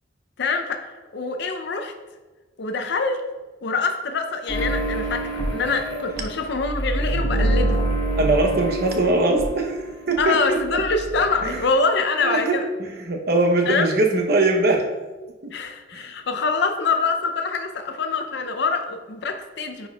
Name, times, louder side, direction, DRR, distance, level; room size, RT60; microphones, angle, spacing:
voice 1, 0.4-1.9 2.6-3.2 3.6-7.9 10.2-12.7 13.7-13.9 15.5-19.9, left 4 dB, 65° left, 7 dB, 0.6 m, -25 dB
sound 1, 4.5-10.2 10.5-11.6, right 1 dB, 35° left, 1.6 m, -26 dB
voice 2, 8.2-9.7 10.1-10.8 11.4-11.6 12.2-12.6 13.1-14.9 15.4-15.5, right 2 dB, 60° right, 2 dB, 0.8 m, -21 dB
9.8 x 4.4 x 2.3 m, 1.3 s
head